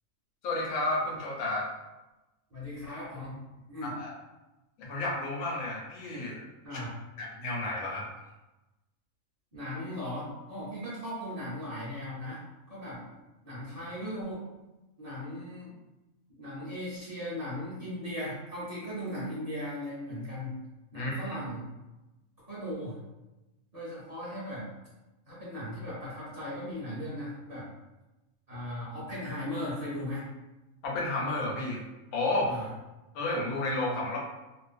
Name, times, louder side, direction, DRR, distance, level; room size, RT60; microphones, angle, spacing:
voice 1, 0.4-1.7 3.8-4.1 4.8-6.4 6.7-6.8 7.2-8.0 20.9-21.2 30.8-31.8 32.1-32.5 33.1-34.2, left 2 dB, 85° left, -3 dB, 1.1 m, -31 dB
voice 2, 2.5-3.4 3.7-4.0 6.6-6.9 9.5-12.4 12.7-13.2 13.4-14.4 15.0-15.7 16.4-20.6 20.9-21.7 22.5-23.0 23.7-24.7 25.3-27.7 28.5-30.2 32.5-32.7, left 1 dB, 40° right, -10 dB, 0.6 m, -37 dB
2.5 x 2.4 x 2.4 m, 1.0 s
omnidirectional pair, 1.5 m